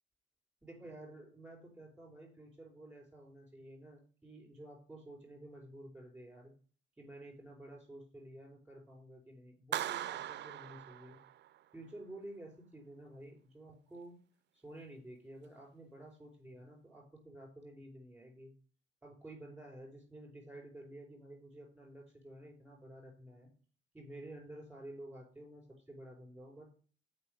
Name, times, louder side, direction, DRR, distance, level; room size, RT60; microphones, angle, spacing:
voice 1, 0.6-6.5 7.0-11.2 11.7-14.2 14.5-18.5 19.0-23.5 23.9-26.7, right 1 dB, 5° right, 1 dB, 4.8 m, -52 dB
Clapping, 9.7-11.6, right 12 dB, 60° right, 0.5 m, -40 dB
6.8 x 5.4 x 6.6 m, 0.41 s
cardioid pair, 90°, 20 cm